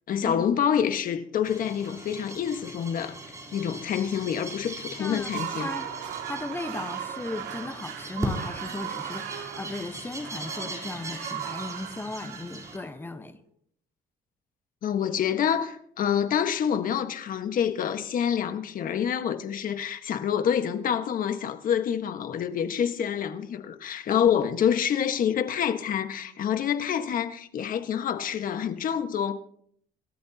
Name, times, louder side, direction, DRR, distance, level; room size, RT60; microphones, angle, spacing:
voice 1, 0.1-5.7 14.8-29.3, left 8 dB, 55° left, 1.5 m, -27 dB
sound 1, 1.4-12.8, right 1 dB, 20° right, 3.8 m, -40 dB
voice 2, 5.0-5.9 6.2-13.4, left 2 dB, 10° left, 1.1 m, -36 dB
sound 2, 5.1-13.2, right 10 dB, 80° right, 2.2 m, -37 dB
26.5 x 13.5 x 2.9 m
cardioid pair, 110°, 17 cm